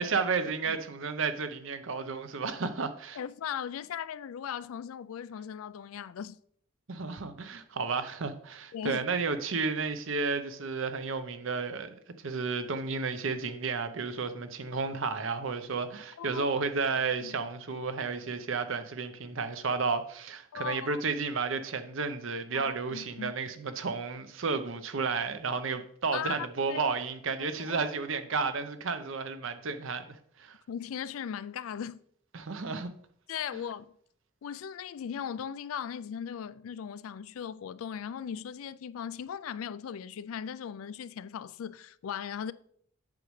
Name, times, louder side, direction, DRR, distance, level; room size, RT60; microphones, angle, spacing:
voice 1, 0.0-3.2 6.9-30.1 30.4-30.6 32.3-32.9, right 4 dB, 70° right, 0.7 m, -32 dB
voice 2, 3.1-6.4 8.7-9.0 16.2-16.5 17.2-17.3 20.5-21.0 22.5-23.3 26.1-26.8 27.4-27.9 30.7-32.0 33.3-33.9 34.4-42.5, left 8 dB, 85° left, 0.3 m, -38 dB
8.4 x 6.2 x 3.2 m
head